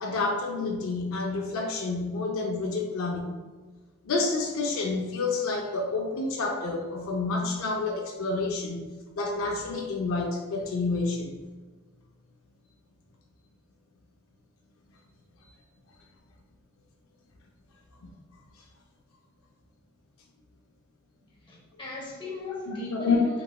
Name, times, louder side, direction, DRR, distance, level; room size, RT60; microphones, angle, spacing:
voice 1, 0.0-3.4 4.0-11.3 18.0-18.1 22.9-23.2, left 3 dB, 65° left, 1 dB, 0.4 m, -29 dB
voice 2, 21.4-23.4, left 2 dB, 20° left, -4 dB, 0.7 m, -37 dB
3.1 x 2.8 x 2.2 m, 1.3 s
head